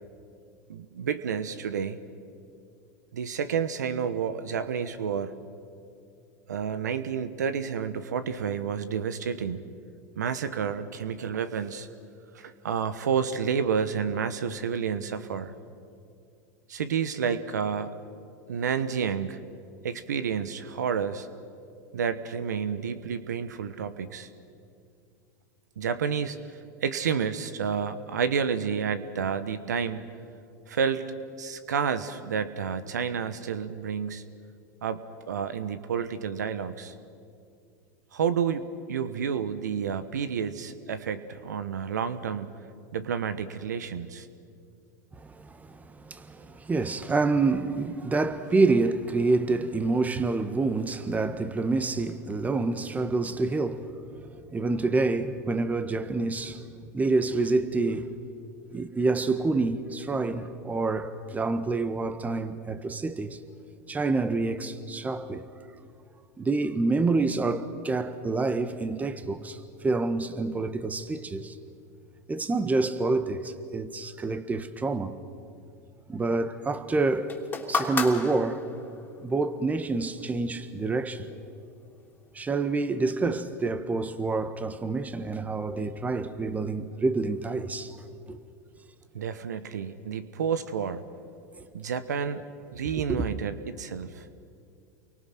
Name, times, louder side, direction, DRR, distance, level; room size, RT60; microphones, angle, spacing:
voice 1, 0.7-2.0 3.1-5.3 6.5-9.6 10.2-11.9 12.3-15.5 16.7-18.0 18.5-19.4 19.8-21.3 21.9-24.3 25.8-30.1 30.7-31.1 31.4-34.3 34.8-36.9 38.1-42.5 42.9-44.3 89.1-91.0 91.7-92.4 92.7-94.3, right 7 dB, 90° right, 1.2 m, -30 dB
voice 2, 45.2-54.0 54.5-56.6 56.9-58.1 58.7-63.4 63.9-65.4 66.4-71.6 72.3-75.2 76.1-77.3 77.7-78.6 79.2-81.3 82.3-88.0 88.3-88.4 93.1-93.2, right 3 dB, 15° right, 1.5 m, -27 dB
sound 1, 77.3-79.0 80.0-80.1, left 4 dB, 20° left, 3.2 m, -31 dB
29.5 x 24.0 x 6.0 m
hypercardioid pair, 100°, 9 cm